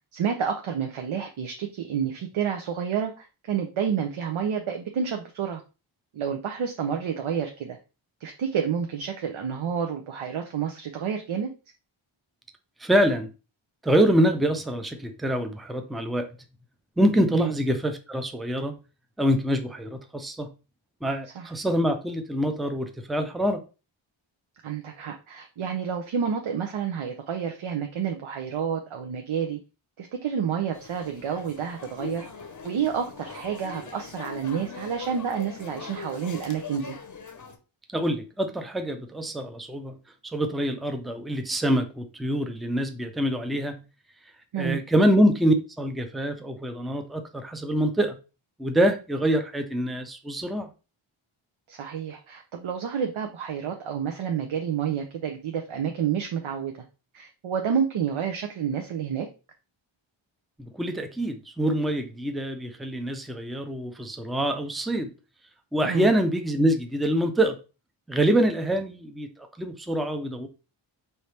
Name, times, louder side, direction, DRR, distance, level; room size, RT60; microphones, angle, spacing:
voice 1, 0.1-5.6 6.1-7.8 8.2-11.5 17.3-17.5 21.4-21.5 24.6-29.6 30.0-32.3 32.6-37.0 44.5-44.8 51.7-56.7 57.1-59.3 65.8-66.1, right 7 dB, 70° right, 0.7 m, -29 dB
voice 2, 12.8-13.3 13.8-16.3 17.0-18.7 19.2-20.5 21.0-23.6 37.9-40.0 40.3-43.8 44.6-48.2 48.6-50.7 60.6-65.1 65.7-67.6 68.1-70.5, right 1 dB, ahead, 0.5 m, -25 dB
sound 1, 30.7-37.6, left 5 dB, 40° left, 0.7 m, -41 dB
4.6 x 2.8 x 3.2 m
wide cardioid pair, 105°, 49 cm